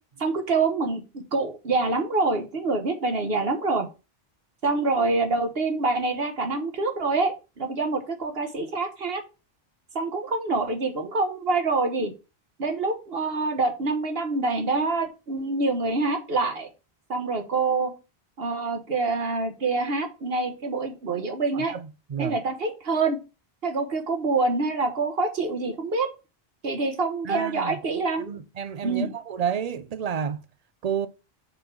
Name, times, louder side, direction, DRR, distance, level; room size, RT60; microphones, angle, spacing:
voice 1, 0.2-3.9 4.6-9.2 9.9-12.1 12.6-16.7 17.1-17.9 18.4-21.7 22.2-23.2 23.6-26.1 26.6-28.3 28.8-29.1, right 3 dB, 70° right, 1.4 m, -26 dB
voice 2, 21.5-22.4 27.2-27.8 28.2-30.4 30.8-31.1, right 7 dB, 45° right, 0.6 m, -30 dB
6.6 x 4.0 x 6.0 m
omnidirectional pair, 1.1 m